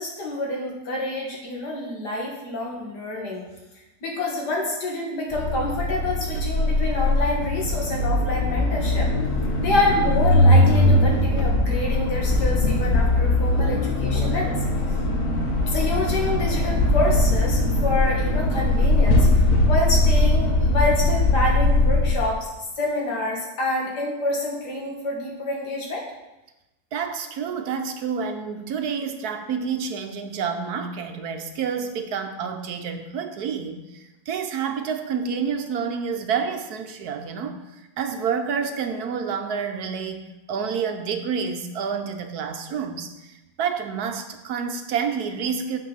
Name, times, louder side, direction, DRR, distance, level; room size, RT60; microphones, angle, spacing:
voice 1, 0.0-3.4 4.0-9.1 9.6-14.6 15.7-22.5 22.8-26.0, left 2 dB, 75° left, -2 dB, 2.5 m, -27 dB
sound 1, 5.3-22.2, left 1 dB, 55° left, 1.4 m, -20 dB
voice 2, 26.9-45.8, right 6 dB, 70° right, 6 dB, 1.2 m, -29 dB
7.7 x 6.1 x 5.6 m, 0.99 s
omnidirectional pair, 1.8 m